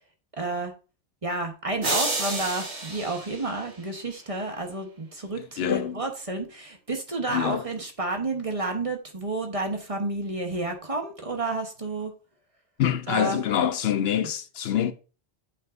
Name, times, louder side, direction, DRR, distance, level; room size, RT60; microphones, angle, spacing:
voice 1, 0.4-0.7 1.2-12.1 13.1-13.4, right 2 dB, 35° right, 1.1 m, -30 dB
sound 1, 1.8-4.1, right 2 dB, 85° right, 2.0 m, -30 dB
voice 2, 5.4-6.0 7.3-7.6 12.8-14.9, left 9 dB, 75° left, 0.8 m, -25 dB
8.4 x 5.4 x 2.6 m
omnidirectional pair, 1.1 m